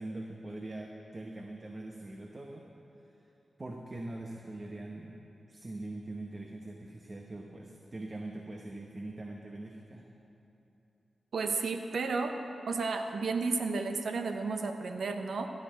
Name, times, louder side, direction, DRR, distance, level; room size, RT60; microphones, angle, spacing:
voice 1, 0.0-2.6 3.0-3.2 3.6-5.1 5.5-10.1, right 2 dB, 40° right, 1 dB, 0.9 m, -42 dB
voice 2, 11.3-12.4 12.7-15.5, right 4 dB, 75° right, 6 dB, 0.8 m, -32 dB
15.0 x 5.9 x 7.8 m, 3.0 s
cardioid pair, 50°, 0 cm